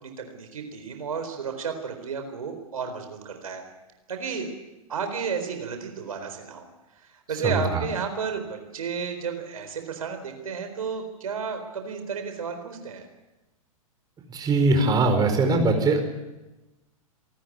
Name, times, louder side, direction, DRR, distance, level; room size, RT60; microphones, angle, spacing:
voice 1, 0.0-3.6 4.1-4.5 4.9-6.6 7.0-13.0, right 6 dB, 70° right, 6 dB, 4.2 m, -32 dB
voice 2, 7.4-7.8 14.3-16.0, right 3 dB, 20° right, 5 dB, 4.7 m, -21 dB
27.5 x 14.0 x 9.5 m, 1.1 s
figure-of-eight pair, 105°, 19 cm